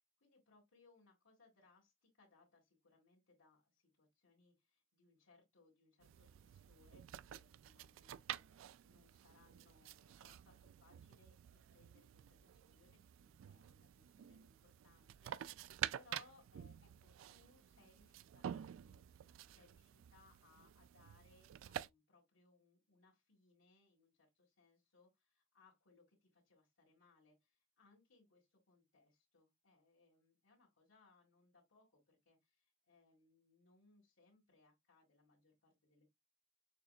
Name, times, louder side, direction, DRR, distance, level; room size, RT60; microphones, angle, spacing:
voice 1, 0.2-36.1, left 3 dB, 85° left, 2.0 m, -70 dB
sound 1, 6.0-21.9, right 10 dB, 70° right, 0.3 m, -50 dB
6.5 x 3.2 x 2.4 m
head